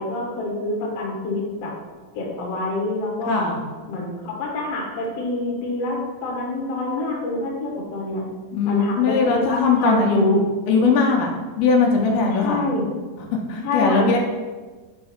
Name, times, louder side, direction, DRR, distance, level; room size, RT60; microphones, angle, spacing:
voice 1, 0.0-1.7 2.1-3.4 3.9-8.3 8.6-10.4 12.3-12.9 13.6-14.1, left 2 dB, 55° left, -1 dB, 1.9 m, -26 dB
voice 2, 3.3-3.6 8.5-11.3 11.6-12.6 13.5-14.2, left 4 dB, 80° left, 1 dB, 2.7 m, -19 dB
5.7 x 5.2 x 4.3 m, 1.3 s
omnidirectional pair, 4.3 m